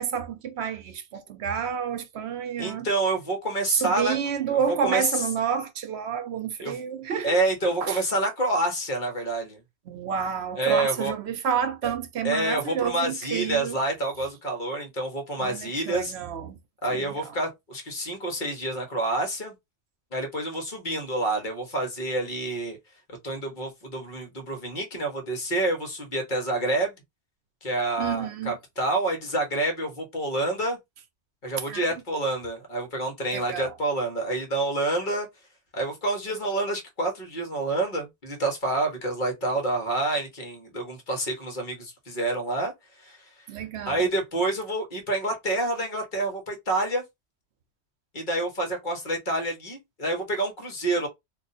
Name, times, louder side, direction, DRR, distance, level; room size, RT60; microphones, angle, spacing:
voice 1, 0.0-2.9 3.7-7.4 7.8-8.0 9.9-13.7 15.4-16.6 16.9-17.3 28.0-28.6 31.7-31.8 33.3-33.7 43.5-44.0, right 7 dB, 70° right, 0.8 m, -29 dB
voice 2, 2.6-4.1 4.5-5.2 6.6-6.7 7.2-9.6 10.6-11.1 11.8-11.9 12.2-16.1 16.8-19.5 20.1-22.8 23.2-26.9 27.6-30.8 31.4-35.3 35.7-42.7 43.0-43.2 43.8-47.0 48.1-51.1, right 2 dB, 45° left, 1.2 m, -28 dB
2.5 x 2.4 x 4.0 m
omnidirectional pair, 1.2 m